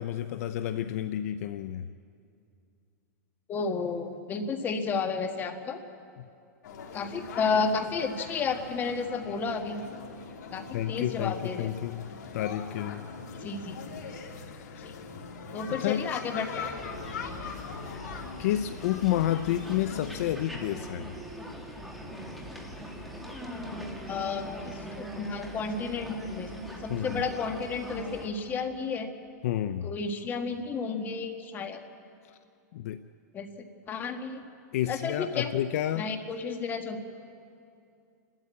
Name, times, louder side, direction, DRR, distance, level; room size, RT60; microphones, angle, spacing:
voice 1, 0.0-1.9 10.7-13.1 14.4-14.9 15.7-16.1 17.8-18.1 18.4-21.1 26.9-27.2 29.4-29.9 32.7-33.0 34.7-36.1, left 12 dB, 55° left, 11 dB, 0.6 m, -30 dB
voice 2, 3.5-5.8 6.9-9.8 10.5-11.7 13.4-13.7 14.8-14.9 15.5-16.7 24.1-29.1 29.8-31.8 33.3-33.5 33.9-34.4 34.9-35.5 35.9-37.0, left 5 dB, 20° left, 6 dB, 1.6 m, -32 dB
sound 1, 6.6-20.3, left 5 dB, 75° left, 3.1 m, -41 dB
sound 2, 16.8-28.3, equal, ahead, 2.2 m, -41 dB
29.0 x 13.0 x 8.4 m, 2.6 s
supercardioid pair, 155°, 9 cm